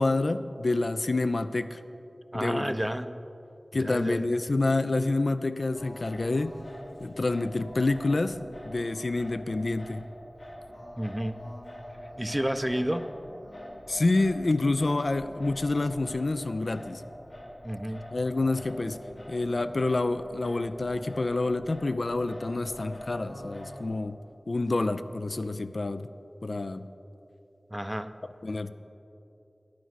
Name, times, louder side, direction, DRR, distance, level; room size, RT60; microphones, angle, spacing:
voice 1, 0.0-1.8 2.3-2.7 3.7-6.5 7.0-8.4 8.7-10.0 13.9-17.0 18.1-19.0 19.3-24.2 24.5-26.1 26.4-26.8 28.4-28.7, left 2 dB, 70° left, 11 dB, 0.3 m, -28 dB
voice 2, 2.3-3.1 3.7-4.2 11.0-11.4 12.2-13.1 17.6-18.1 27.7-28.1, equal, 15° right, 10 dB, 0.4 m, -30 dB
Singing, 5.7-23.9, equal, 55° left, 2.5 m, -44 dB
10.0 x 9.4 x 4.0 m, 2.8 s
wide cardioid pair, 50°, 0 cm